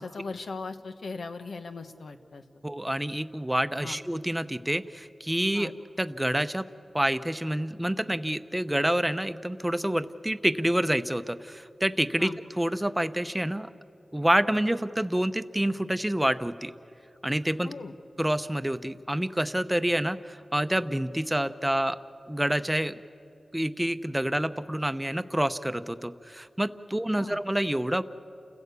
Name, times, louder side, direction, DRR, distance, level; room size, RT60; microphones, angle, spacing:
voice 1, 0.0-2.4 3.8-4.0 5.5-5.7 12.2-12.4 17.6-17.9 27.1-27.4, left 4 dB, 80° left, 8 dB, 1.2 m, -38 dB
voice 2, 2.6-5.7 6.0-6.7 6.9-13.7 14.1-16.7 17.2-17.7 18.2-22.0 22.3-23.0 23.5-28.0, right 1 dB, 10° right, 11 dB, 0.8 m, -28 dB
29.5 x 16.0 x 8.4 m, 2.7 s
wide cardioid pair, 70°, 0 cm